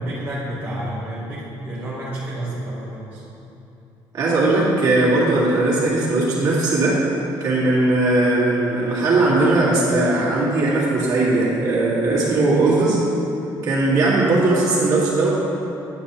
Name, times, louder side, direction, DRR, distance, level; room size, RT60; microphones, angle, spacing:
voice 1, 0.0-3.2, right 1 dB, 20° right, -9 dB, 1.1 m, -30 dB
voice 2, 4.1-7.0 7.4-13.0 13.6-15.3, right 2 dB, 50° right, -7 dB, 1.9 m, -18 dB
9.8 x 7.4 x 2.9 m, 2.8 s
cardioid pair, 170°, 8 cm